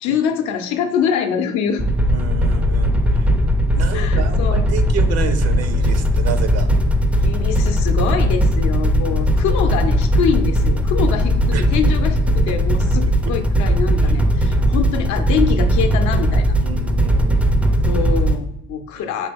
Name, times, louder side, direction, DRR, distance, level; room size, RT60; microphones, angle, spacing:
voice 1, 0.0-1.8 3.9-4.7 7.2-16.6 17.9-19.3, left 7 dB, 60° left, 6 dB, 0.6 m, -24 dB
sound 1, 1.8-18.4, equal, 5° right, 0.4 m, -18 dB
voice 2, 2.1-3.3 3.7-6.7 11.5-11.7 12.3-12.6 13.2-13.4 16.6-17.4 19.0-19.1, right 7 dB, 50° right, 9 dB, 0.6 m, -30 dB
4.4 x 2.9 x 3.4 m, 0.87 s
supercardioid pair, 75°, 32 cm